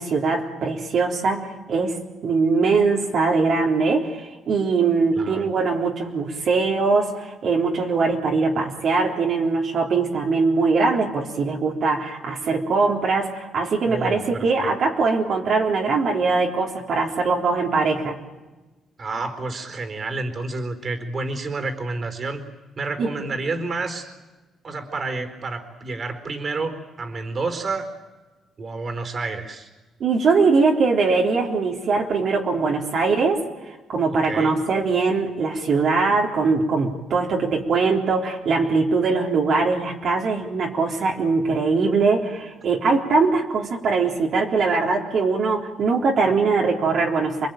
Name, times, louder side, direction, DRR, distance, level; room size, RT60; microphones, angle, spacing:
voice 1, 0.0-2.0 2.2-18.2 23.0-23.1 30.0-33.4 33.9-47.5, right 4 dB, 60° right, -1 dB, 3.9 m, -21 dB
voice 2, 5.1-5.5 13.9-14.7 19.0-22.4 22.8-24.1 24.6-27.9 28.6-29.7 34.1-34.6, right 3 dB, 45° right, 9 dB, 4.2 m, -29 dB
28.5 x 22.5 x 9.2 m, 1.2 s
cardioid pair, 90°, 0 cm